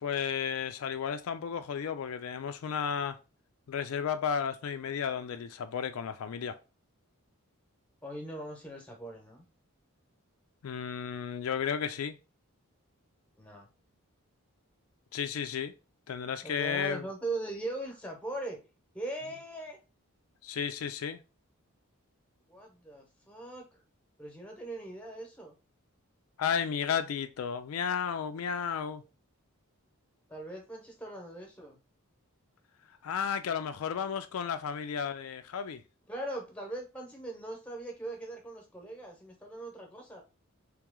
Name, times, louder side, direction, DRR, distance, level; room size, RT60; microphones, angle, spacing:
voice 1, 0.0-3.2 3.7-6.6 10.6-12.1 15.1-15.7 16.1-17.0 20.4-21.2 26.4-29.0 33.0-35.8, left 7 dB, 75° left, 0.4 m, -33 dB
voice 2, 8.0-9.4 13.4-13.7 16.4-18.6 18.9-19.8 22.5-23.8 24.2-25.6 30.3-31.8 36.1-40.2, right 2 dB, 5° left, 0.9 m, -40 dB
3.4 x 3.1 x 3.6 m
head